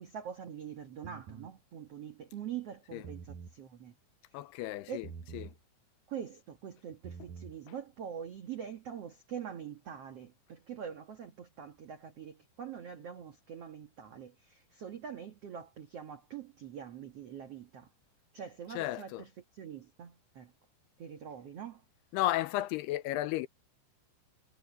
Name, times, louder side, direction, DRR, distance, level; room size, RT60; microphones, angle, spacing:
voice 1, 0.0-3.9 4.9-5.0 6.1-17.9 18.3-20.5 21.0-21.8, right 8 dB, 85° right, 1.3 m, -44 dB
sound 1, 1.0-1.5 2.9-3.6 5.0-5.6 6.9-7.6, right 6 dB, 65° right, 2.3 m, -46 dB
voice 2, 4.3-5.1 5.3-5.5 18.8-19.2 22.1-23.5, left 15 dB, 80° left, 2.5 m, -33 dB
omnidirectional pair, 5.1 m